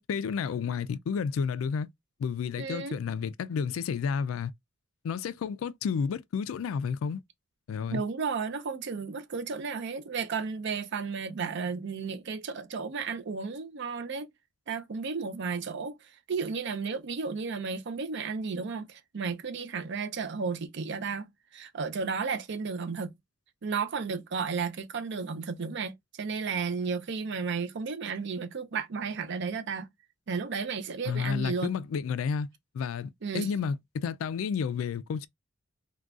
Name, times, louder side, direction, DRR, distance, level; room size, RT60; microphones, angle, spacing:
voice 1, 0.0-1.9 2.2-4.5 5.0-7.2 7.7-8.0 31.1-32.5 32.7-35.3, left 6 dB, 90° left, 0.3 m, -31 dB
voice 2, 2.6-3.0 7.9-14.3 14.7-21.3 21.5-23.1 23.6-29.9 30.3-31.7 33.2-33.5, right 5 dB, 60° right, 0.5 m, -33 dB
3.7 x 2.3 x 2.3 m
head